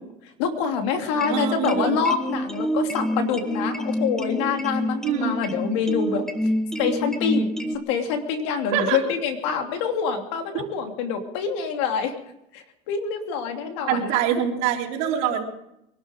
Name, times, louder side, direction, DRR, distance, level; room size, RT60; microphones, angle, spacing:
voice 1, 0.4-6.2 6.8-7.5 7.9-12.1 12.5-14.1, left 6 dB, 85° left, 5 dB, 2.9 m, -26 dB
sound 1, 1.1-7.8, equal, 5° left, 1.2 m, -28 dB
voice 2, 1.3-2.0 5.0-5.3 8.7-9.0 13.9-15.4, right 9 dB, 70° right, 0 dB, 3.7 m, -24 dB
24.0 x 12.0 x 5.1 m, 0.82 s
cardioid pair, 130°, 14 cm